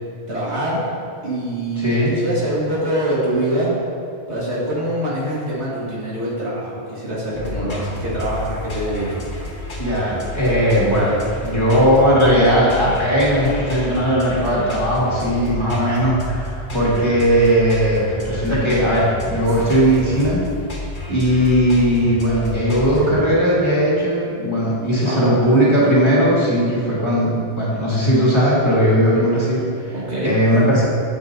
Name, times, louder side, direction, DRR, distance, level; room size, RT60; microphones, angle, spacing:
voice 1, 0.3-0.8 1.2-3.7 4.3-9.2 25.0-25.4 29.9-30.4, right 1 dB, 80° right, -7 dB, 2.2 m, -24 dB
voice 2, 1.8-2.1 9.8-20.4 21.1-29.9 30.2-30.8, equal, 25° left, -8 dB, 1.9 m, -18 dB
sound 1, 7.3-23.1, left 1 dB, 85° left, 1.7 m, -30 dB
9.8 x 7.7 x 2.7 m, 2.5 s
omnidirectional pair, 1.1 m